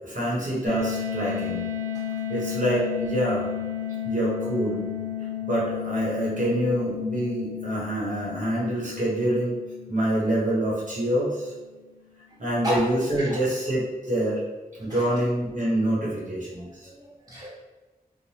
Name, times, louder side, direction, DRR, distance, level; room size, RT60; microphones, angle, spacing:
voice 1, 0.0-1.6 2.3-3.4 4.0-4.8 5.4-9.6 9.9-11.5 12.4-14.4 14.8-16.7, right 1 dB, 55° right, -7 dB, 0.9 m, -26 dB
sound 1, 0.7-11.4, left 9 dB, 60° left, 0.8 m, -33 dB
voice 2, 16.8-17.5, equal, 25° right, -6 dB, 1.0 m, -32 dB
3.3 x 2.1 x 2.8 m, 1.2 s
wide cardioid pair, 60°, 16 cm